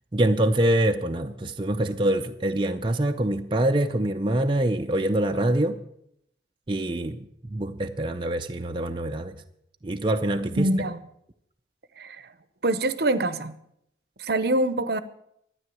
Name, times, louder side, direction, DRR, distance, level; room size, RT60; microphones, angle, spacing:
voice 1, 0.1-5.8 6.7-9.4 9.8-10.7, right 1 dB, 25° right, 0.6 m, -25 dB
voice 2, 10.6-11.0 12.0-12.3 12.6-13.6 14.2-15.0, right 1 dB, 55° right, 0.8 m, -25 dB
13.0 x 9.9 x 7.7 m
head